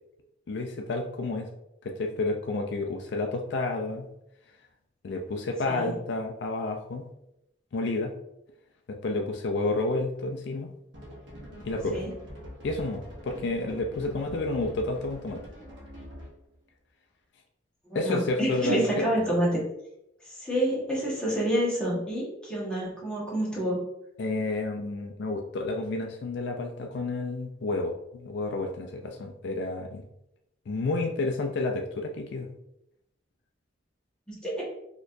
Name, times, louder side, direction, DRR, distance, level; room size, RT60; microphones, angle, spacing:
voice 1, 0.5-1.5 1.8-4.1 5.0-7.1 7.7-8.1 8.9-10.7 11.6-12.0 12.6-15.4 17.9-19.0 24.2-30.0 30.7-32.5, left 2 dB, 65° left, 3 dB, 0.4 m, -30 dB
voice 2, 5.7-6.0 11.9-12.1 17.8-19.6 20.2-23.8 34.3-34.6, equal, 5° left, -7 dB, 1.2 m, -28 dB
sound 1, 10.9-16.5, equal, 70° right, 1.0 m, -44 dB
4.2 x 2.9 x 2.5 m, 0.83 s
head